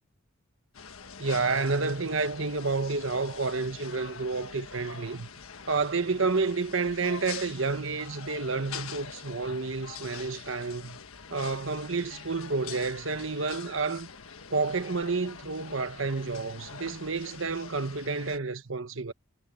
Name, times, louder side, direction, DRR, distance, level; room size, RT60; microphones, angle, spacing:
sound 1, 0.7-18.4, left 6 dB, 75° left, 1.4 m, -44 dB
voice 1, 1.2-5.3 5.7-11.0 11.3-14.1 14.5-19.1, right 4 dB, 65° right, 1.2 m, -30 dB
head